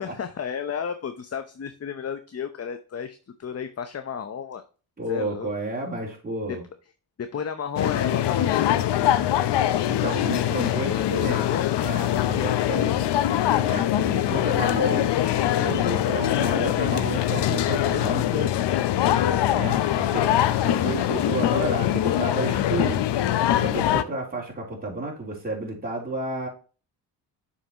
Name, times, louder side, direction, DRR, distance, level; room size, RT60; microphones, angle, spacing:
voice 1, 0.0-4.6 5.1-5.5 7.2-8.9 10.3-11.7 12.1-12.6 20.7-20.9, left 7 dB, 35° left, 9 dB, 0.8 m, -33 dB
voice 2, 5.0-6.6 9.9-11.5 11.8-12.9 13.6-15.1 15.5-18.5 19.5-23.0 23.6-26.5, right 2 dB, 20° right, -2 dB, 3.3 m, -31 dB
sound 1, 7.8-24.0, left 12 dB, 75° left, 0.7 m, -23 dB
7.1 x 5.8 x 2.9 m, 0.36 s
cardioid pair, 75°, 41 cm